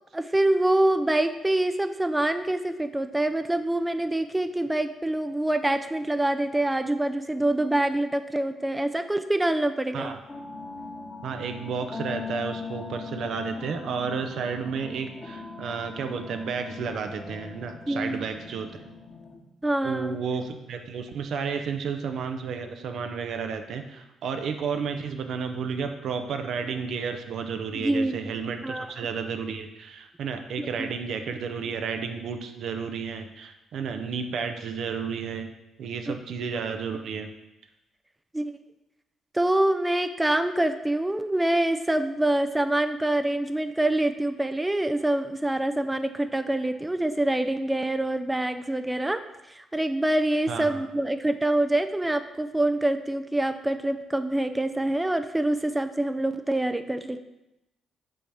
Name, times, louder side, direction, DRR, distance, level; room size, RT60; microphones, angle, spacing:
voice 1, 0.1-10.1 17.9-18.3 19.6-20.2 27.8-28.2 28.6-28.9 30.6-30.9 36.1-36.2 38.3-38.6 39.3-57.2, right 1 dB, 15° right, 9 dB, 0.4 m, -25 dB
sound 1, 10.3-19.4, left 4 dB, 35° left, 1.3 m, -40 dB
voice 2, 11.2-18.8 19.8-35.5 35.8-37.3 50.5-50.8, right 6 dB, 65° right, 6 dB, 0.5 m, -32 dB
5.4 x 3.2 x 5.5 m, 0.94 s
hypercardioid pair, 45°, 0 cm